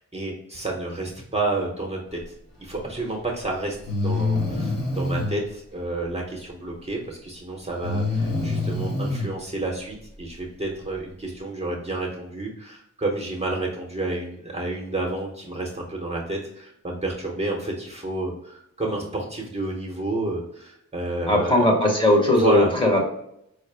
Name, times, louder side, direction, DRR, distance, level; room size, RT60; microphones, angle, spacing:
voice 1, 0.0-2.2 2.6-3.8 4.0-21.6 22.4-22.7, right 2 dB, 20° right, -2 dB, 0.8 m, -30 dB
Breathing, 3.0-3.1 3.9-5.4 7.8-9.3, left 2 dB, 55° left, 1.2 m, -25 dB
voice 2, 21.3-23.1, left 1 dB, 15° left, -1 dB, 0.9 m, -19 dB
4.9 x 2.1 x 3.3 m, 0.76 s
wide cardioid pair, 125°, 30 cm